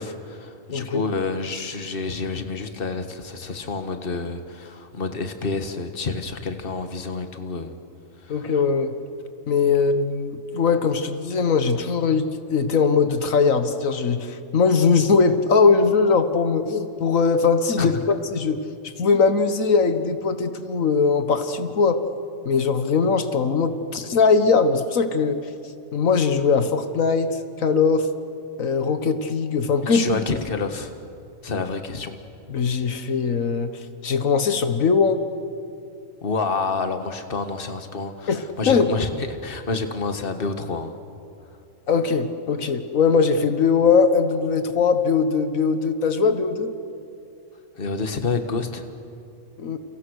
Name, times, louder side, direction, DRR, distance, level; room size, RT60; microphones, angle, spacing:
voice 1, 0.0-7.7 8.2-8.5 17.8-18.1 29.8-30.9 31.4-32.2 36.2-41.0 47.8-48.9, left 4 dB, 45° left, 7 dB, 1.8 m, -28 dB
voice 2, 0.7-1.0 8.3-8.9 9.5-22.0 22.4-25.4 25.9-27.3 27.6-28.1 28.6-30.2 32.5-33.7 34.0-35.2 38.3-38.9 41.9-46.7 49.6-49.8, left 5 dB, 85° left, 9 dB, 1.7 m, -20 dB
30.0 x 30.0 x 6.5 m, 2.6 s
omnidirectional pair, 1.4 m